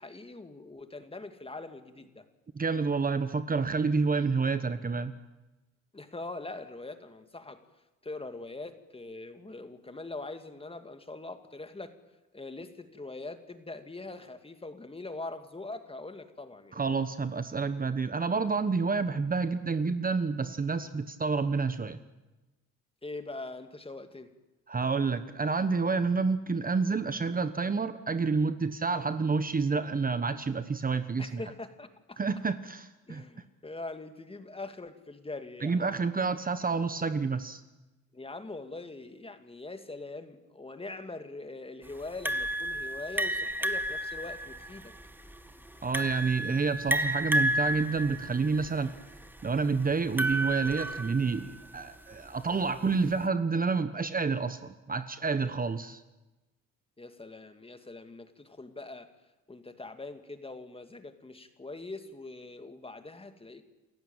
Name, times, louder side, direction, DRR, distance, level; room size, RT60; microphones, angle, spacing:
voice 1, 0.0-2.2 5.9-7.6 8.0-11.9 12.3-16.8 23.0-24.3 31.2-32.2 33.1-35.8 38.1-44.9 57.0-59.1 59.5-63.6, left 2 dB, 20° left, 8 dB, 2.3 m, -42 dB
voice 2, 2.5-5.1 16.7-22.0 24.7-31.4 32.2-33.2 35.6-37.6 45.8-48.9 49.4-56.0, right 4 dB, 30° right, 11 dB, 1.2 m, -29 dB
sound 1, 42.3-51.5, right 1 dB, 5° right, 1.8 m, -31 dB
29.0 x 15.0 x 9.0 m, 1.1 s
cardioid pair, 90°, 30 cm